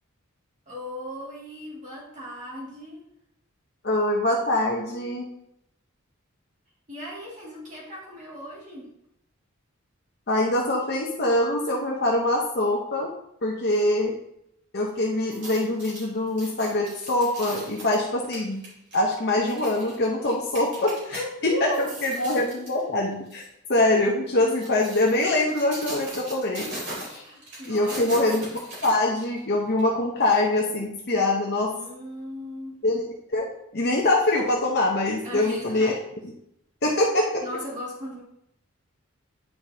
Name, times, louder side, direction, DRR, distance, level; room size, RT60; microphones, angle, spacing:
voice 1, 0.7-3.0 6.9-8.9 21.0-22.3 27.2-28.0 31.7-32.8 35.2-35.9 37.4-38.2, equal, 35° right, -5 dB, 2.1 m, -37 dB
voice 2, 3.8-5.3 10.3-13.1 13.4-14.1 14.7-18.6 18.9-23.4 23.7-26.7 27.1-27.2 27.7-28.4 28.8-31.7 32.8-35.9 36.8-37.4, left 2 dB, 45° left, -2 dB, 0.9 m, -24 dB
sound 1, 15.2-21.2 21.6-22.8 23.3-23.5 24.3-29.4 29.8-29.9, right 1 dB, 50° right, 2.9 m, -39 dB
9.3 x 5.0 x 2.8 m, 0.76 s
head